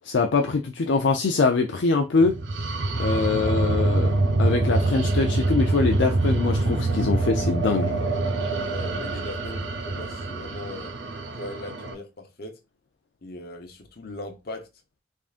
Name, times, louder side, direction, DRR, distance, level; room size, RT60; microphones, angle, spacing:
voice 1, 0.0-2.4 3.0-4.1 4.4-8.0, left 4 dB, 70° left, 0.5 m, -23 dB
sound 1, 2.2-11.9, right 2 dB, 70° right, 0.7 m, -25 dB
voice 2, 8.7-10.9 11.3-12.6 13.2-14.7, left 1 dB, 55° left, 0.9 m, -39 dB
3.7 x 3.6 x 2.4 m
head